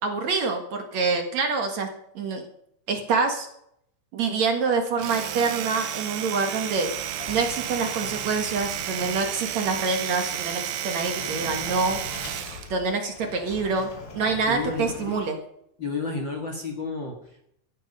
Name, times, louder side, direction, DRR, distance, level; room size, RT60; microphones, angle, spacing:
voice 1, 0.0-1.9 2.1-2.4 2.9-3.5 4.1-6.9 7.3-12.0 12.7-15.4, right 4 dB, 55° right, 4 dB, 2.0 m, -26 dB
Domestic sounds home sounds, 4.9-12.7, right 11 dB, 85° right, 3.7 m, -32 dB
Sliding door, 5.9-15.3, left 4 dB, 90° left, 5.6 m, -42 dB
voice 2, 14.5-15.2 15.8-17.5, left 4 dB, 50° left, 2 dB, 1.4 m, -32 dB
16.0 x 14.0 x 5.5 m, 0.73 s
omnidirectional pair, 5.4 m